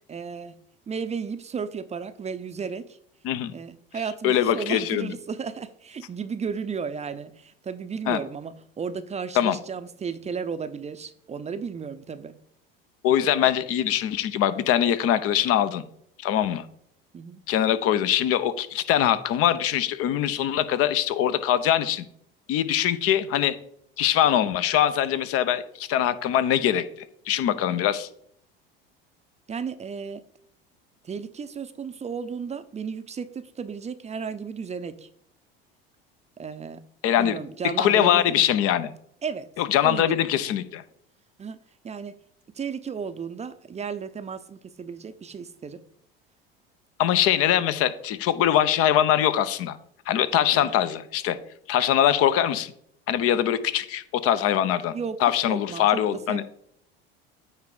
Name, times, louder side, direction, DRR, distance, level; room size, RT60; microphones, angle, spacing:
voice 1, 0.1-0.6 0.9-3.0 3.5-12.4 17.1-17.4 29.5-30.2 31.0-35.1 36.4-36.9 37.2-38.5 39.2-39.5 39.8-40.2 41.4-41.6 41.8-42.1 42.5-45.8 50.5-50.7 54.9-55.2 55.5-56.0 56.3-56.4, right 6 dB, 25° right, 12 dB, 0.6 m, -34 dB
voice 2, 4.2-5.1 8.1-8.2 9.4-9.6 13.0-15.8 16.2-16.6 17.5-22.0 22.5-23.5 24.0-26.8 27.3-28.1 37.0-37.4 37.8-38.9 39.6-40.8 47.0-49.8 50.1-51.4 51.7-52.7 53.1-54.9 55.2-56.4, left 10 dB, 50° left, 13 dB, 0.8 m, -22 dB
9.0 x 3.4 x 4.9 m, 0.68 s
hypercardioid pair, 75°, 29 cm